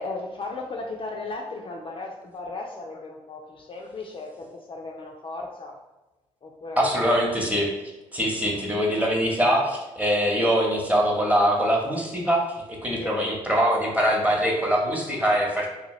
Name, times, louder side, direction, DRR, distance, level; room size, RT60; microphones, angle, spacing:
voice 1, 0.0-5.7 6.4-7.1 8.4-8.6 13.0-13.1, left 3 dB, 35° left, 0 dB, 0.4 m, -36 dB
voice 2, 6.8-7.7 8.1-12.4 12.7-15.7, equal, 10° right, -1 dB, 0.9 m, -23 dB
2.8 x 2.2 x 3.0 m, 1.1 s
hypercardioid pair, 50°, 15 cm